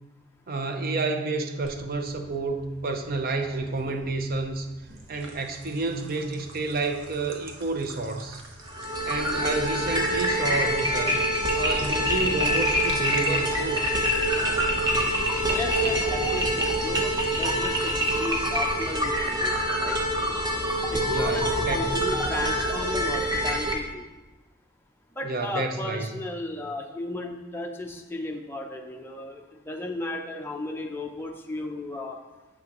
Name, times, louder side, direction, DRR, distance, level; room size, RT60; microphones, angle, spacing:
voice 1, 0.5-4.7 5.1-8.4 9.1-11.3 11.5-13.9 21.0-22.0 25.2-26.1, right 3 dB, 50° right, 6 dB, 0.6 m, -30 dB
sound 1, 1.6-19.3, right 2 dB, 90° right, 1.0 m, -44 dB
sound 2, 8.7-23.7, equal, 20° right, 0.9 m, -25 dB
voice 2, 15.5-19.5 19.8-20.0 20.9-24.1 25.2-32.2, left 2 dB, 10° left, 2 dB, 0.6 m, -35 dB
7.0 x 5.9 x 3.0 m, 1.1 s
head